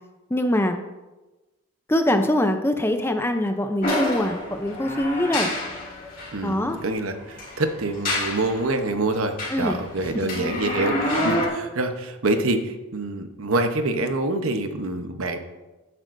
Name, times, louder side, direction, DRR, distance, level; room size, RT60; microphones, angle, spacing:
voice 1, 0.3-0.8 1.9-5.5 6.4-6.8 9.5-9.8, left 1 dB, 10° left, 6 dB, 0.5 m, -23 dB
sound 1, 3.8-6.3 7.3-8.6 9.1-11.5, left 1 dB, 40° left, 2.5 m, -27 dB
voice 2, 6.3-15.4, right 2 dB, 80° right, 7 dB, 0.9 m, -26 dB
13.5 x 9.0 x 2.6 m, 1.1 s
head